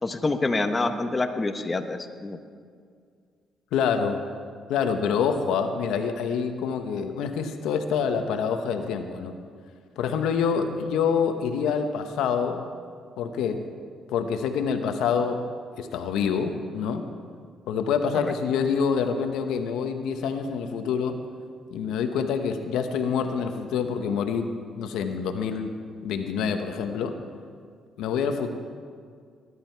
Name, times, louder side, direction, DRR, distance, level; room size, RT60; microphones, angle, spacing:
voice 1, 0.0-2.4 18.2-18.3, left 2 dB, 25° left, 6 dB, 1.0 m, -27 dB
voice 2, 3.7-4.2 4.7-9.3 10.0-12.6 13.2-13.7 14.1-15.4 15.8-17.0 17.7-21.2 21.7-24.5 24.8-25.7 26.0-27.2 28.0-28.5, left 6 dB, 90° left, 6 dB, 1.0 m, -26 dB
19.5 x 11.5 x 4.6 m, 2.1 s
cardioid pair, 90°, 0 cm